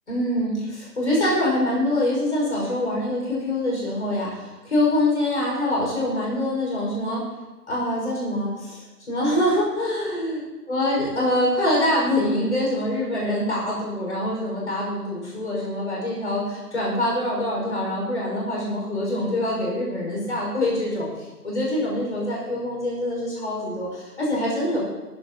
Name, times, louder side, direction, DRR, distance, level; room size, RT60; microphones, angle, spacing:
voice 1, 0.1-7.2 7.7-10.4 10.7-24.8, left 1 dB, 45° left, -4 dB, 5.5 m, -25 dB
20.0 x 12.5 x 2.9 m, 1.2 s
figure-of-eight pair, 170°, 49 cm